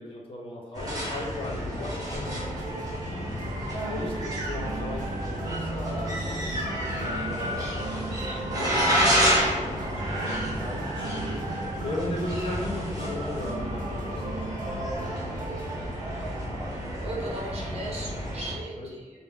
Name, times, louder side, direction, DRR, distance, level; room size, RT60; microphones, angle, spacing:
voice 1, 0.0-2.3 3.8-7.7 8.4-11.3 11.8-15.2 18.8-18.9, left 2 dB, 40° left, -2 dB, 0.9 m, -37 dB
sound 1, 0.7-18.6, equal, 30° right, 1.3 m, -30 dB
sound 2, 2.3-16.1, right 2 dB, 90° right, 0.5 m, -37 dB
voice 2, 3.0-3.3 16.0-16.5 17.0-19.2, right 1 dB, 50° right, -4 dB, 1.1 m, -38 dB
4.5 x 2.2 x 3.6 m, 1.3 s
wide cardioid pair, 135°, 13 cm